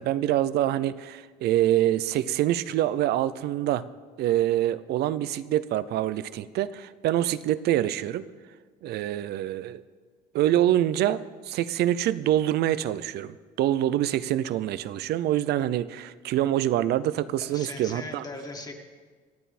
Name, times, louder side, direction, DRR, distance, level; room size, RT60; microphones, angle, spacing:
voice 1, 0.0-3.8 4.2-8.2 8.8-9.8 10.3-18.2, right 12 dB, 75° right, 16 dB, 0.6 m, -25 dB
voice 2, 17.4-18.7, left 2 dB, 25° left, 2 dB, 1.8 m, -39 dB
26.0 x 9.3 x 4.3 m, 1.5 s
cardioid pair, 110°, 17 cm